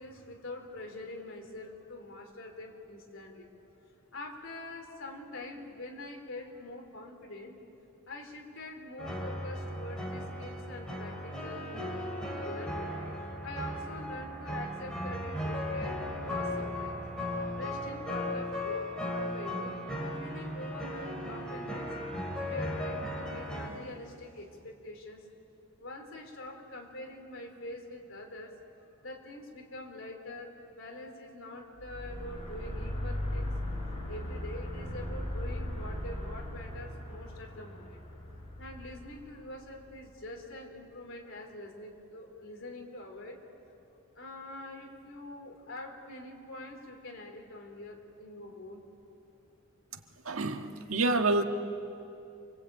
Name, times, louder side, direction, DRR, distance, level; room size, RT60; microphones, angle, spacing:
voice 1, 0.0-3.5 4.1-7.6 8.1-11.8 12.3-13.0 13.4-17.0 17.5-21.9 22.4-25.2 25.8-28.6 29.0-33.6 34.1-38.0 38.6-43.4 44.1-48.8, left 2 dB, 65° left, 2 dB, 3.7 m, -45 dB
sound 1, 9.0-23.7, left 1 dB, 5° left, 3.9 m, -36 dB
sound 2, 31.8-40.1, left 1 dB, 30° left, 5.2 m, -38 dB
voice 2, 50.2-51.4, right 2 dB, 80° right, 5 dB, 1.6 m, -28 dB
27.5 x 23.0 x 8.8 m, 2.7 s
head